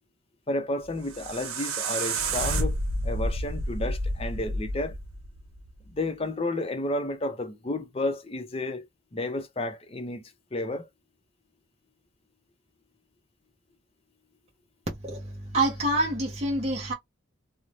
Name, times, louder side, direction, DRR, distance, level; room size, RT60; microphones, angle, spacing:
voice 1, 0.5-5.0 5.9-8.9 9.1-10.9, left 2 dB, 30° left, 0.5 m, -32 dB
sound 1, 0.8-5.9, right 1 dB, 90° right, 0.7 m, -30 dB
voice 2, 15.0-16.9, right 1 dB, 30° right, 0.6 m, -27 dB
2.6 x 2.0 x 3.1 m
head